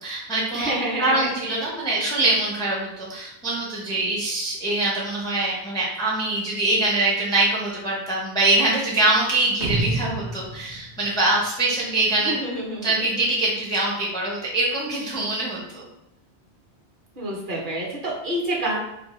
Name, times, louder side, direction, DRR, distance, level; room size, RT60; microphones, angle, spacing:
voice 1, 0.0-0.7 1.0-12.4 12.8-15.9, right 2 dB, 5° left, -5 dB, 0.4 m, -23 dB
voice 2, 0.5-1.7 12.2-13.2 17.2-18.8, right 1 dB, 55° right, -4 dB, 0.9 m, -28 dB
sound 1, 9.6-12.1, right 2 dB, 80° right, 0.8 m, -29 dB
2.5 x 2.5 x 3.0 m, 0.85 s
omnidirectional pair, 1.1 m